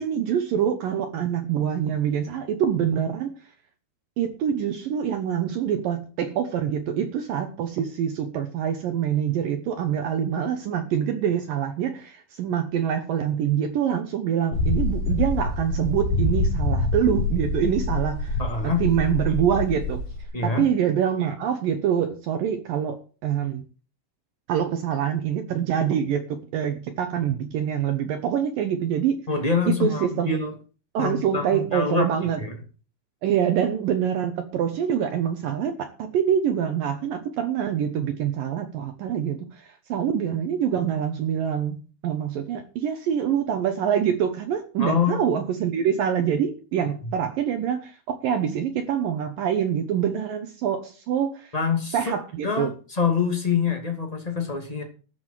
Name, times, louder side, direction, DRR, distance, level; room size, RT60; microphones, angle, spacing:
voice 1, 0.0-3.4 4.2-20.0 20.4-23.6 24.5-30.4 30.9-32.4 33.2-51.5 51.9-52.7, right 9 dB, 75° right, 2.1 m, -25 dB
sound 1, 14.5-20.2, left 2 dB, 55° left, 3.2 m, -26 dB
voice 2, 18.4-18.9 20.3-20.6 29.3-30.5 31.0-32.1 32.4-32.5 44.8-45.2 47.0-47.1 51.5-52.0 52.4-54.8, left 5 dB, 15° left, 1.1 m, -25 dB
13.5 x 7.2 x 7.5 m
omnidirectional pair, 5.5 m